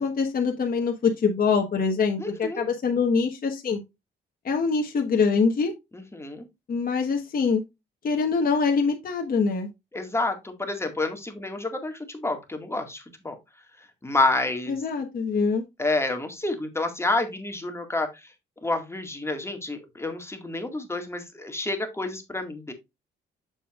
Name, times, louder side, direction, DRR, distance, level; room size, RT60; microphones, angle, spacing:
voice 1, 0.0-3.8 4.4-5.7 6.7-7.6 8.0-9.7 14.7-15.6, left 5 dB, 45° left, 2 dB, 1.4 m, -24 dB
voice 2, 2.2-2.6 5.9-6.5 9.9-13.4 14.0-14.8 15.8-18.1 18.6-22.7, left 2 dB, 15° left, 5 dB, 1.9 m, -29 dB
7.1 x 6.9 x 2.4 m, 0.22 s
cardioid pair, 90°, 20 cm